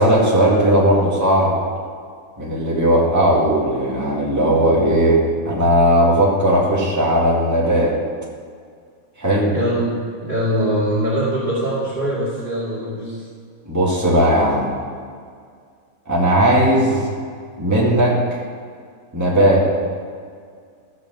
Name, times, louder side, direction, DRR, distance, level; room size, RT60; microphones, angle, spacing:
voice 1, 0.0-1.6 2.4-8.0 9.2-9.5 13.7-14.7 16.1-17.1 17.6-18.2 19.1-19.7, right 1 dB, 10° right, -5 dB, 2.2 m, -17 dB
voice 2, 9.5-9.9 10.2-13.2, equal, 30° right, -9 dB, 2.7 m, -22 dB
14.0 x 6.1 x 7.6 m, 2.1 s
omnidirectional pair, 1.6 m